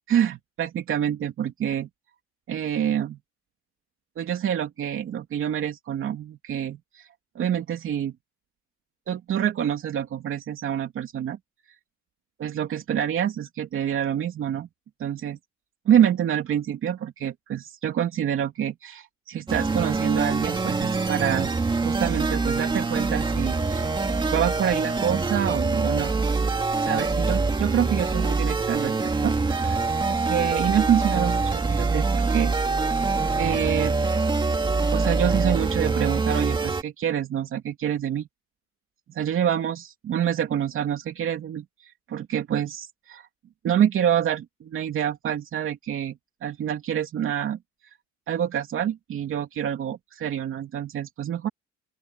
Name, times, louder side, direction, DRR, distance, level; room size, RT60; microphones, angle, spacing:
voice 1, 0.1-1.9 2.5-3.2 4.2-7.1 7.3-8.1 9.1-11.4 12.4-14.7 15.0-15.4 15.8-24.0 24.3-26.1 26.8-29.8 30.0-32.5 33.4-33.9 34.9-38.3 39.1-43.3 43.6-47.6 48.3-51.5, right 9 dB, 45° right, 2.9 m, -27 dB
sound 1, 19.5-36.8, right 3 dB, 15° right, 2.0 m, -24 dB
open air
cardioid pair, 160°, 29 cm